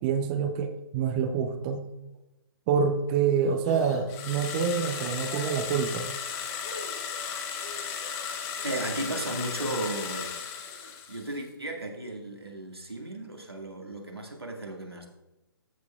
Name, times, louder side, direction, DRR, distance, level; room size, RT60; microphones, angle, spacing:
voice 1, 0.0-1.9 2.7-6.1, right 6 dB, 25° right, 6 dB, 0.5 m, -27 dB
sound 1, 2.8-11.0, left 3 dB, 40° left, 1.3 m, -45 dB
sound 2, 4.1-11.4, left 7 dB, 20° left, 0.8 m, -36 dB
voice 2, 5.0-5.5 8.6-10.4 11.1-15.1, right 1 dB, 90° right, 1 dB, 1.9 m, -35 dB
14.0 x 6.5 x 2.3 m, 0.99 s
figure-of-eight pair, 135°, 13 cm